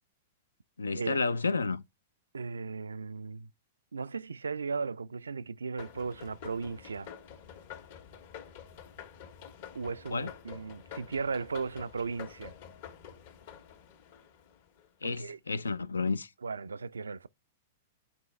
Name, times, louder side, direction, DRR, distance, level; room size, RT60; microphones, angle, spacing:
voice 1, 0.8-1.8 10.1-10.3 15.0-16.3, left 4 dB, 90° left, 0.5 m, -31 dB
voice 2, 2.3-3.5 3.9-7.1 9.7-12.5 15.0-15.4 16.4-17.3, right 4 dB, 85° right, 0.3 m, -36 dB
sound 1, 5.8-14.9, left 8 dB, 60° left, 1.5 m, -48 dB
8.6 x 4.5 x 3.2 m
hypercardioid pair, 110°, 0 cm